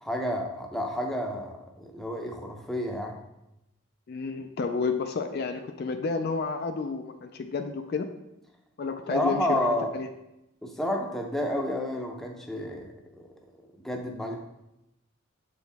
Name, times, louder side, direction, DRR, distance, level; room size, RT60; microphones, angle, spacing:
voice 1, 0.0-3.2 9.1-9.9 10.6-13.3 13.8-14.4, left 1 dB, ahead, 1 dB, 0.6 m, -30 dB
voice 2, 4.1-8.1 8.8-10.1, left 4 dB, 50° left, 7 dB, 0.3 m, -31 dB
6.9 x 4.6 x 3.4 m, 0.89 s
head